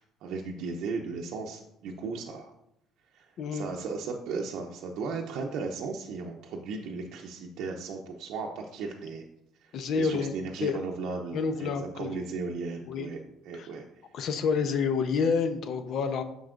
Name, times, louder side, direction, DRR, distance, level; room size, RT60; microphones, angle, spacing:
voice 1, 0.0-2.5 3.1-9.2 9.6-13.2 13.4-13.8, right 4 dB, 75° right, 0 dB, 0.6 m, -36 dB
voice 2, 9.7-10.3 10.6-10.8 11.3-12.1 12.9-13.1 13.5-13.7 14.1-16.2, left 5 dB, 60° left, 9 dB, 0.7 m, -28 dB
7.6 x 5.4 x 2.5 m, 0.81 s
supercardioid pair, 90°, 0 cm